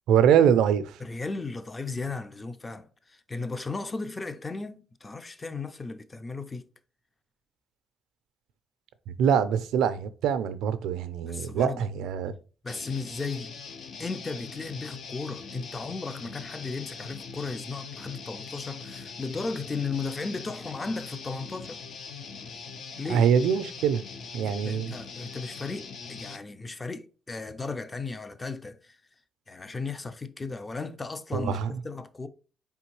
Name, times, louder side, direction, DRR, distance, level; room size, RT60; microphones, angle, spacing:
voice 1, 0.1-0.8 9.1-12.3 23.1-24.0 24.3-25.0 31.3-31.7, right 8 dB, 90° right, 0.4 m, -23 dB
voice 2, 1.0-6.7 11.2-11.9 12.6-13.5 14.0-21.8 23.0-23.3 24.4-29.0 29.5-32.3, left 4 dB, 25° left, 0.5 m, -35 dB
Guitar, 12.7-26.4, left 5 dB, 65° left, 0.6 m, -42 dB
4.5 x 3.5 x 3.0 m
cardioid pair, 90°, 0 cm